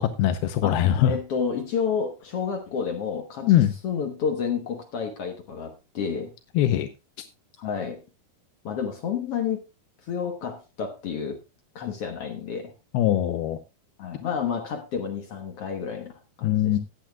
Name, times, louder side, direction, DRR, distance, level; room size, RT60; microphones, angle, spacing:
voice 1, 0.0-1.1 3.4-3.7 6.6-6.9 12.9-13.6 16.4-16.8, left 11 dB, 85° left, 2.7 m, -21 dB
voice 2, 1.1-6.3 7.6-8.0 8.6-9.6 10.1-11.4 11.7-12.7 14.0-16.8, left 6 dB, 65° left, 1.4 m, -30 dB
17.0 x 10.5 x 2.3 m
omnidirectional pair, 4.4 m